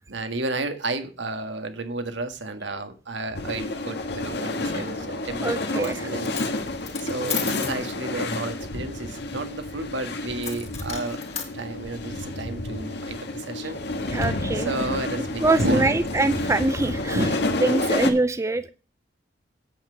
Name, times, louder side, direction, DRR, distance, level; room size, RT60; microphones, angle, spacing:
voice 1, 0.1-6.5 7.0-11.2 11.5-13.8 14.6-16.0 17.1-17.3 17.6-18.0, right 2 dB, 75° right, 7 dB, 1.8 m, -31 dB
sound 1, 3.3-18.1, left 2 dB, 60° left, 1.6 m, -30 dB
voice 2, 5.4-6.1 13.6-13.7 14.1-14.7 15.4-17.3 17.6-18.7, right 2 dB, 15° right, 12 dB, 0.5 m, -24 dB
Coin (dropping), 5.7-6.0 6.2-7.8 10.4-11.5, left 7 dB, 35° left, 2.3 m, -34 dB
8.9 x 8.2 x 5.1 m, 0.34 s
head